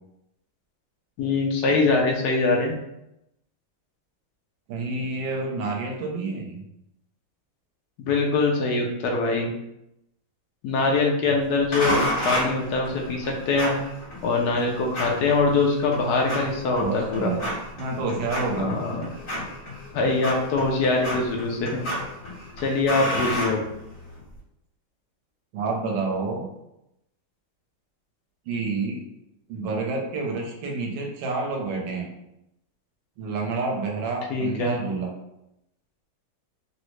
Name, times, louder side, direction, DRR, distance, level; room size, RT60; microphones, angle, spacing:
voice 1, 1.2-2.7 8.0-9.5 10.6-13.8 14.2-17.3 18.5-19.1 19.9-21.8 22.6-23.6 34.3-34.8, left 3 dB, 75° left, 0 dB, 0.9 m, -23 dB
voice 2, 4.7-6.6 16.8-18.8 25.5-26.4 28.5-29.0 29.5-32.1 33.2-35.1, right 3 dB, 85° right, 0 dB, 1.4 m, -29 dB
sound 1, 11.7-24.2, equal, 55° left, 1.9 m, -32 dB
3.7 x 2.0 x 3.0 m, 0.85 s
omnidirectional pair, 2.1 m